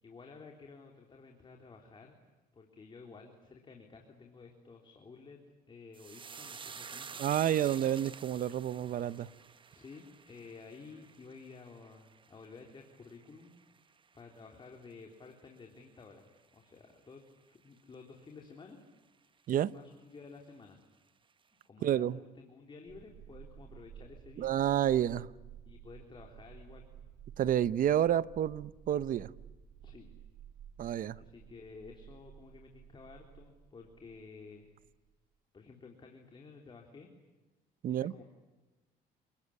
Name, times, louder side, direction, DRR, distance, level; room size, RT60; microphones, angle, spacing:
voice 1, 0.0-2.2 2.5-5.4 5.7-7.3 9.7-13.5 14.1-18.8 19.7-20.8 21.6-24.5 25.7-26.8 29.8-30.1 31.1-34.7 35.5-37.1 37.9-38.2, left 4 dB, 30° left, 2 dB, 3.6 m, -53 dB
sound 1, 5.9-14.6 14.9-15.5 15.8-16.0, right 6 dB, 30° right, 0.9 m, -50 dB
voice 2, 7.2-9.3 19.5-19.7 21.8-22.2 24.4-25.3 27.4-29.3 30.8-31.2 37.8-38.1, right 10 dB, 55° right, 17 dB, 0.8 m, -29 dB
sound 2, 22.9-35.1, right 9 dB, 80° right, 4.9 m, -54 dB
29.0 x 20.5 x 9.9 m, 1.1 s
cardioid pair, 110°, 17 cm